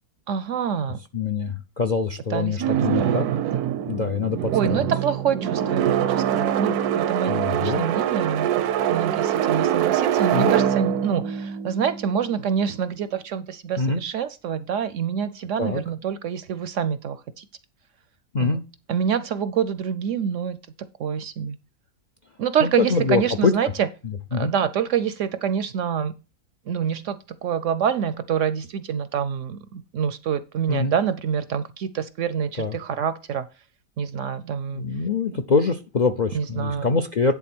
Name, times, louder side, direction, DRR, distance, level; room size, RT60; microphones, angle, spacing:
voice 1, 0.3-1.0 2.3-3.4 4.5-17.5 18.4-18.6 18.9-21.6 22.4-23.9 24.3-26.1 26.7-33.5 34.0-34.8 36.3-36.9, right 7 dB, 65° right, 0.8 m, -26 dB
voice 2, 1.1-3.3 3.9-4.5 7.3-7.9 10.3-10.5 13.8-14.0 15.6-15.8 18.3-18.6 22.8-23.5 24.3-24.5 30.7-30.9 32.6-32.7 34.7-37.3, left 4 dB, 50° left, 0.5 m, -24 dB
sound 1, 2.6-12.6, right 10 dB, 85° right, 1.1 m, -24 dB
10.5 x 3.7 x 6.0 m
omnidirectional pair, 1.6 m